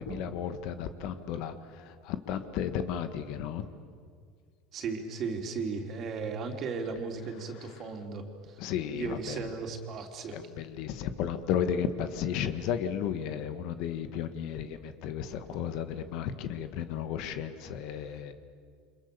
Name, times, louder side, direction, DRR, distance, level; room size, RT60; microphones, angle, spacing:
voice 1, 0.0-1.5 2.0-3.6 8.6-9.4 10.3-18.3, left 8 dB, 60° left, 9 dB, 1.8 m, -33 dB
voice 2, 4.7-8.6 8.9-10.4, right 4 dB, 40° right, 3 dB, 3.5 m, -36 dB
29.5 x 26.0 x 7.0 m, 2.1 s
supercardioid pair, 135°, 0 cm